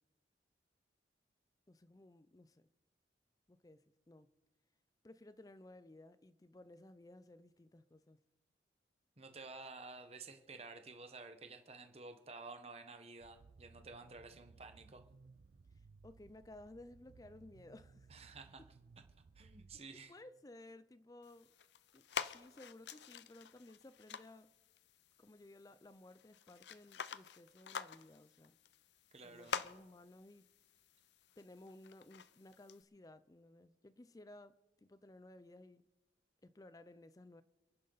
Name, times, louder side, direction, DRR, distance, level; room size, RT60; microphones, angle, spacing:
voice 1, 1.7-2.7 3.5-4.3 5.0-8.2 16.0-18.1 18.6-18.7 20.1-21.5 21.9-24.5 25.2-28.6 29.2-30.5 31.4-35.8 36.4-37.4, left 1 dB, 20° left, 0.4 m, -57 dB
voice 2, 9.2-15.0 18.1-18.6 19.3-20.1 29.1-29.6, right 3 dB, 35° right, 1.1 m, -52 dB
sound 1, 13.2-19.8, right 4 dB, 70° right, 0.4 m, -62 dB
sound 2, 21.2-32.8, left 7 dB, 75° left, 0.6 m, -48 dB
28.5 x 10.5 x 4.0 m
head